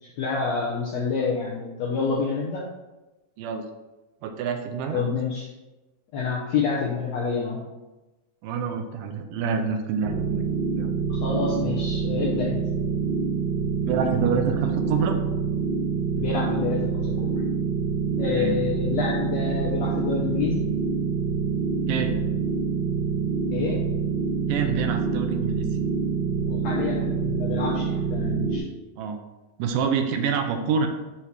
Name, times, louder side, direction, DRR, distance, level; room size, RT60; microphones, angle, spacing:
voice 1, 0.0-2.6 4.9-5.5 6.1-7.6 11.1-12.6 16.1-17.3 18.2-20.7 23.5-23.8 26.4-28.6, left 5 dB, 75° left, -3 dB, 1.6 m, -28 dB
voice 2, 4.2-5.1 8.4-10.4 10.7-10.9 13.9-15.2 18.3-18.6 21.9-22.2 24.5-25.7 29.0-29.2 29.6-30.9, right 6 dB, 85° right, 5 dB, 2.3 m, -27 dB
sound 1, 10.0-28.6, right 5 dB, 65° right, 1.8 m, -26 dB
6.9 x 4.3 x 4.6 m, 1.1 s
omnidirectional pair, 4.0 m